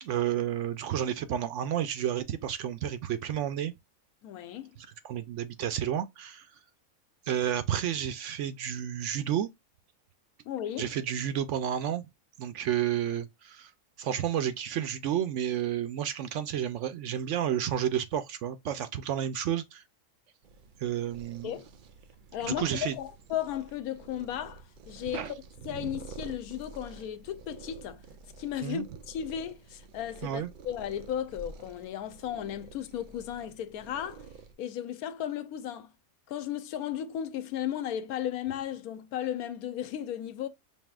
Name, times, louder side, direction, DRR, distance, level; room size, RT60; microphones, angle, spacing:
voice 1, 0.0-3.7 4.8-6.5 7.3-9.5 10.8-12.0 12.4-13.7 14.0-19.8 20.8-21.6 22.4-22.9 25.1-25.3 25.7-25.9 28.6-28.9 30.2-30.5, right 10 dB, 65° right, 0.8 m, -31 dB
voice 2, 4.2-4.7 10.4-10.9 21.4-21.7 22.3-25.2 25.6-28.0 28.4-34.2 34.6-35.9 36.3-40.5, left 10 dB, 90° left, 1.1 m, -35 dB
sound 1, 20.4-34.6, right 4 dB, 85° right, 0.4 m, -50 dB
5.3 x 2.7 x 2.3 m
omnidirectional pair, 1.5 m